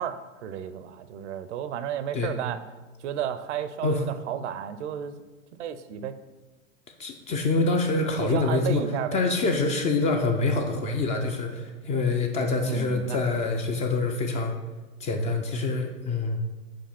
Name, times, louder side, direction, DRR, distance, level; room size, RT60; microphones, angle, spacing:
voice 1, 0.0-2.6 3.0-5.2 5.5-6.2 8.2-9.2 12.6-13.4, right 9 dB, 60° right, 13 dB, 0.6 m, -32 dB
voice 2, 7.0-8.8 9.1-14.5 15.0-16.4, left 3 dB, 20° left, 4 dB, 0.4 m, -26 dB
5.2 x 4.8 x 5.8 m, 1.2 s
hypercardioid pair, 105°, 40 cm